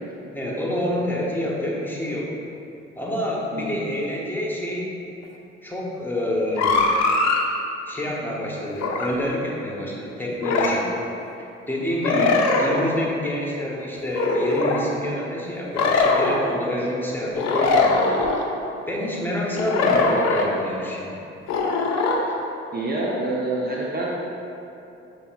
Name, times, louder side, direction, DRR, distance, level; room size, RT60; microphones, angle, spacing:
voice 1, 0.3-2.3 2.9-5.0 5.6-6.9 7.9-10.9 11.7-18.2 18.9-21.1, left 1 dB, 5° left, -4 dB, 1.0 m, -27 dB
sound 1, 6.6-7.4 8.8-9.1 10.4-10.8 12.0-12.8 14.1-14.8 15.8-16.4 17.4-18.4 19.5-20.5 21.5-22.2, left 3 dB, 60° left, 0.6 m, -21 dB
voice 2, 22.7-24.3, right 2 dB, 30° right, -4 dB, 0.7 m, -27 dB
6.7 x 2.9 x 2.3 m, 2.8 s
hypercardioid pair, 45°, 31 cm